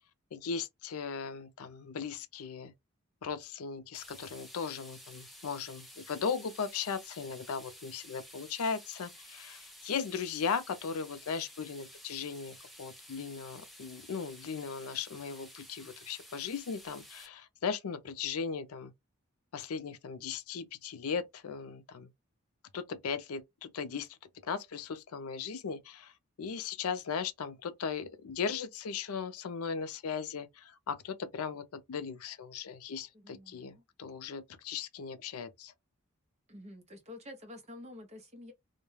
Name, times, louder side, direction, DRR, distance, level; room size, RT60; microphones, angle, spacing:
voice 1, 0.3-2.7 3.2-18.9 19.5-22.1 22.7-24.2 24.4-26.1 26.4-35.7, left 6 dB, 80° left, 0.5 m, -37 dB
sound 1, 3.9-17.3, equal, ahead, 0.3 m, -52 dB
voice 2, 33.1-33.8 36.5-38.5, left 1 dB, 30° right, 0.7 m, -49 dB
2.2 x 2.1 x 3.1 m
head